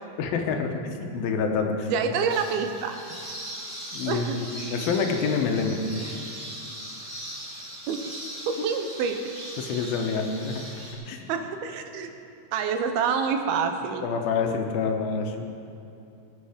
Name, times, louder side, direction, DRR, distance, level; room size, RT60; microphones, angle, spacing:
voice 1, 0.2-1.9 3.9-5.8 9.6-10.7 11.1-11.3 14.0-15.4, left 5 dB, 75° left, 4 dB, 2.7 m, -27 dB
voice 2, 1.9-3.0 4.1-4.4 7.9-9.4 11.3-12.1 12.5-14.1, right 6 dB, 80° right, 6 dB, 2.7 m, -27 dB
sound 1, 2.3-10.9, equal, 10° right, 3.4 m, -39 dB
20.5 x 8.9 x 5.0 m, 2.7 s
omnidirectional pair, 4.4 m